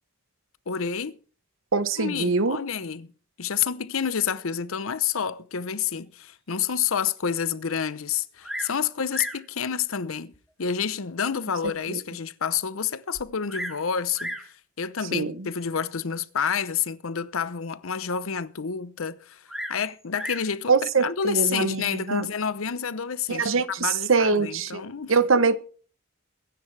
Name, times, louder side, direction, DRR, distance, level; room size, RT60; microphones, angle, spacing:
voice 1, 0.7-1.2 2.0-3.1 3.4-10.3 10.6-14.5 14.8-19.4 19.7-25.2, left 7 dB, 85° left, 0.8 m, -29 dB
voice 2, 1.7-2.6 11.9-12.0 15.1-15.5 20.7-22.3 23.3-24.8 25.1-25.6, right 4 dB, 75° right, 0.9 m, -23 dB
Bird vocalization bird call bird song, 8.4-8.8 9.1-9.5 10.3-10.4 11.1-11.2 11.7-11.8 12.0-12.1 13.1-13.8 14.1-14.5 15.5-15.8 19.5-20.5 21.6-22.0, equal, ahead, 1.4 m, -36 dB
22.5 x 10.0 x 3.3 m
head